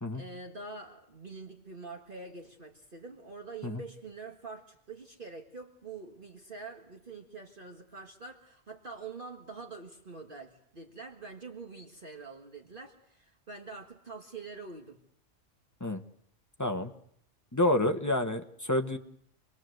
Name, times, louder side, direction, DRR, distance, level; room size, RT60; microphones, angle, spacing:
voice 1, 0.1-15.0, right 4 dB, 45° right, 3 dB, 1.9 m, -45 dB
voice 2, 16.6-16.9 17.5-19.0, left 1 dB, 15° left, 4 dB, 1.3 m, -28 dB
27.0 x 21.5 x 7.9 m, 0.71 s
omnidirectional pair, 1.3 m